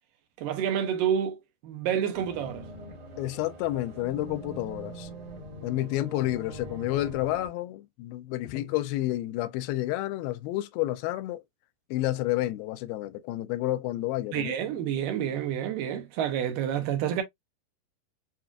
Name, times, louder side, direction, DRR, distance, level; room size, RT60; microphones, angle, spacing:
voice 1, 0.4-2.7 14.3-17.2, right 9 dB, 75° right, 2.2 m, -29 dB
sound 1, 2.1-7.5, right 1 dB, 50° right, 1.8 m, -43 dB
voice 2, 3.2-5.1 5.6-11.4 11.9-14.5, left 15 dB, 85° left, 2.4 m, -30 dB
7.2 x 2.4 x 2.4 m
omnidirectional pair, 4.2 m